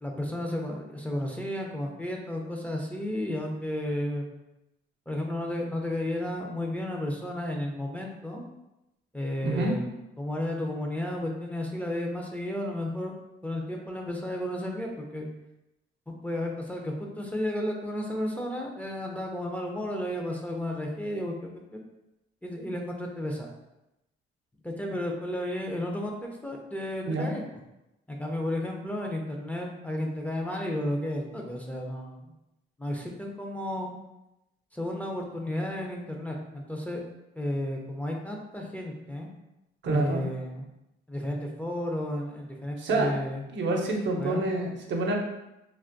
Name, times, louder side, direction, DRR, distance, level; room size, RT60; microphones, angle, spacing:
voice 1, 0.0-4.4 5.1-8.5 9.1-9.9 10.2-13.1 13.4-15.3 16.2-21.8 22.4-23.5 24.6-27.4 28.1-32.2 32.8-34.0 34.7-37.0 37.3-39.3 39.9-40.6 41.1-43.4 44.2-44.5, left 1 dB, 5° left, 0 dB, 0.5 m, -33 dB
voice 2, 9.4-9.8 27.0-27.3 39.8-40.2 42.8-43.1 43.5-45.1, right 2 dB, 65° right, 1 dB, 0.7 m, -27 dB
3.4 x 2.5 x 2.5 m, 0.92 s
cardioid pair, 90°, 20 cm